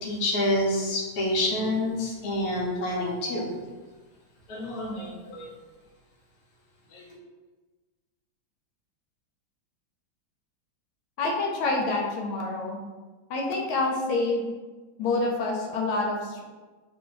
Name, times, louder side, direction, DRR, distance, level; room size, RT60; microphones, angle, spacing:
voice 1, 0.0-3.5 4.5-5.5 6.9-7.0, left 1 dB, 60° left, -3 dB, 1.0 m, -28 dB
voice 2, 11.2-12.8 13.3-14.4 15.0-16.4, left 3 dB, 80° left, 0 dB, 1.4 m, -27 dB
3.2 x 2.6 x 3.7 m, 1.3 s
omnidirectional pair, 2.3 m